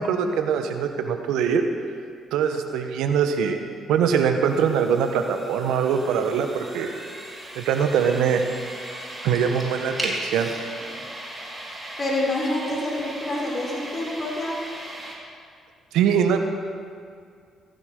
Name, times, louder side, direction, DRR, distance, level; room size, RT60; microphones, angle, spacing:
voice 1, 0.0-1.6 2.3-3.6 3.9-6.9 7.5-8.4 9.2-10.5 15.9-16.4, right 7 dB, 75° right, 6 dB, 1.2 m, -22 dB
sound 1, 4.4-15.1, right 1 dB, 15° right, 4.4 m, -37 dB
voice 2, 12.0-14.5, left 1 dB, 40° left, -3 dB, 3.8 m, -27 dB
16.5 x 14.5 x 3.8 m, 2.2 s
hypercardioid pair, 50°, 0 cm